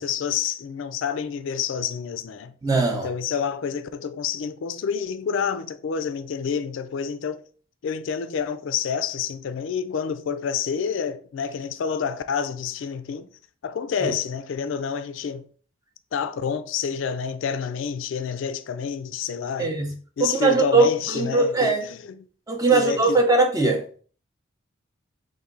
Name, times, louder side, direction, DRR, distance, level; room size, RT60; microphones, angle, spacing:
voice 1, 0.0-2.5 2.9-7.4 7.8-13.3 13.6-15.5 16.1-19.7 20.2-22.2 22.7-23.2, left 7 dB, 75° left, 0.3 m, -28 dB
voice 2, 2.6-3.1 14.0-14.1 19.6-19.9 20.2-21.8 22.5-23.8, right 3 dB, 20° right, 0.6 m, -20 dB
4.2 x 2.6 x 3.8 m
head